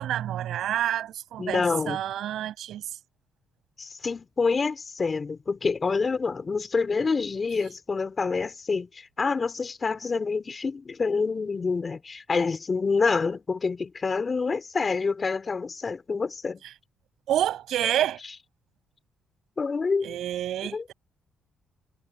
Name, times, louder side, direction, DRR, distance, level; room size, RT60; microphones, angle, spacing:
voice 1, 0.0-2.9 17.3-18.2 20.0-20.9, right 11 dB, 75° right, 6.6 m, -28 dB
voice 2, 1.4-2.0 3.8-16.6 19.6-20.2 20.7-20.8, left 4 dB, 35° left, 3.3 m, -27 dB
cardioid pair, 90°, 0 cm